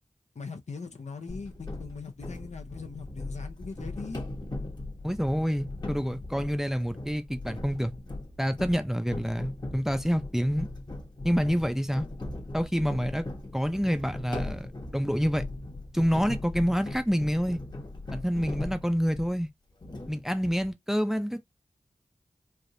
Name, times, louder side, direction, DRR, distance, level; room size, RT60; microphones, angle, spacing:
voice 1, 0.3-4.3, left 4 dB, 70° left, 0.7 m, -41 dB
sound 1, 1.3-19.4 19.8-20.7, left 2 dB, 35° left, 1.1 m, -39 dB
voice 2, 5.0-7.9 8.4-10.7 11.2-12.1 12.5-13.3 13.5-15.5 15.9-17.6 18.1-19.5 20.1-21.4, equal, 5° right, 0.6 m, -27 dB
3.4 x 2.4 x 2.7 m
cardioid pair, 45°, 12 cm